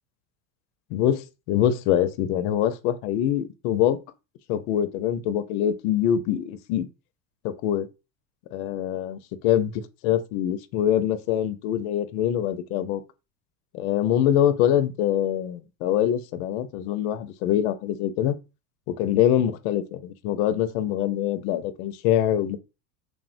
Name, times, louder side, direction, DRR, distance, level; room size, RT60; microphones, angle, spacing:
voice 1, 0.9-4.0 4.5-6.9 7.4-7.9 8.5-9.2 9.4-13.0 13.7-18.4 18.9-22.6, left 10 dB, 70° left, 0.5 m, -24 dB
3.4 x 2.0 x 2.5 m
supercardioid pair, 105°, 44 cm